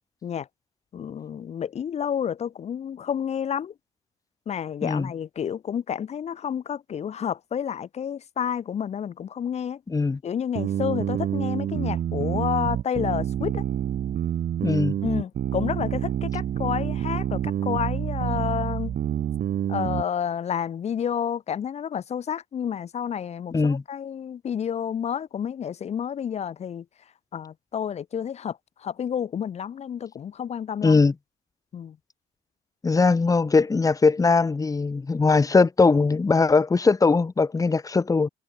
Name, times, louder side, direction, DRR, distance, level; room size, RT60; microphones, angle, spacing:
voice 1, 0.9-3.7 4.5-9.8 10.2-13.6 15.0-18.9 19.7-26.8 27.3-31.0 31.7-32.0, left 8 dB, 40° left, 0.9 m, -30 dB
voice 2, 9.9-10.2 14.6-14.9 23.5-23.8 30.8-31.1 32.8-38.3, left 4 dB, 20° left, 1.6 m, -20 dB
sound 1, 10.5-20.0, right 10 dB, 55° right, 3.7 m, -27 dB
cardioid pair, 110°, 17 cm